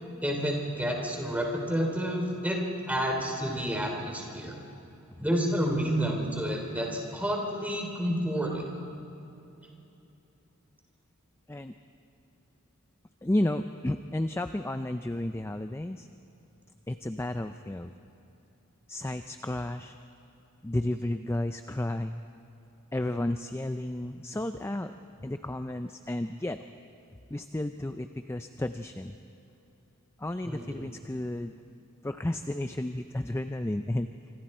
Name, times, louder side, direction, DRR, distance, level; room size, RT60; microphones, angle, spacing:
voice 1, 0.2-2.6 2.9-4.6 5.2-8.7 30.4-30.9, equal, 5° right, 0 dB, 3.3 m, -30 dB
voice 2, 13.2-16.1 16.9-17.9 18.9-19.9 20.6-22.2 22.9-24.9 25.2-26.6 27.3-29.1 30.2-31.6 32.0-34.1, left 1 dB, 10° left, 8 dB, 0.4 m, -32 dB
26.5 x 25.0 x 4.4 m, 2.9 s
head